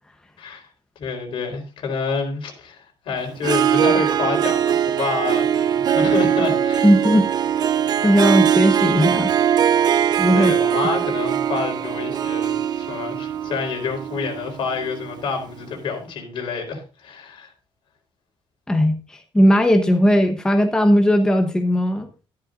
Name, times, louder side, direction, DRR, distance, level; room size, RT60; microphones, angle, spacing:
voice 1, 0.4-0.7 1.0-6.9 10.3-17.5, left 4 dB, 65° left, 4.1 m, -28 dB
Harp, 3.4-15.2, right 9 dB, 50° right, 0.6 m, -21 dB
voice 2, 6.8-7.3 8.0-9.3 10.2-10.5 10.8-10.9 18.7-22.1, equal, 10° left, 0.9 m, -17 dB
13.0 x 11.5 x 2.5 m
cardioid pair, 150°, 9 cm